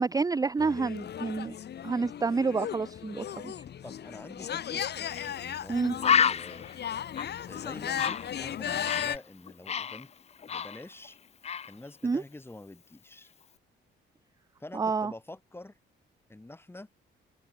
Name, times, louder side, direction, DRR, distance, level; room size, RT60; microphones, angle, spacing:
voice 1, 0.0-1.6 1.8-3.5 5.7-5.9 12.0-12.2 14.7-15.1, right 4 dB, 20° right, 0.5 m, -28 dB
sound 1, 0.6-9.2, left 9 dB, 55° left, 1.7 m, -36 dB
voice 2, 3.8-4.8 5.2-6.7 7.5-10.1 10.5-11.2 11.7-13.3 14.6-15.8 16.3-16.9, left 2 dB, 10° left, 2.9 m, -47 dB
Bird, 5.2-5.3 5.6-5.7 6.0-9.2 9.5-11.1 11.4-11.7, left 7 dB, 35° left, 0.5 m, -29 dB
open air
cardioid pair, 90°, 20 cm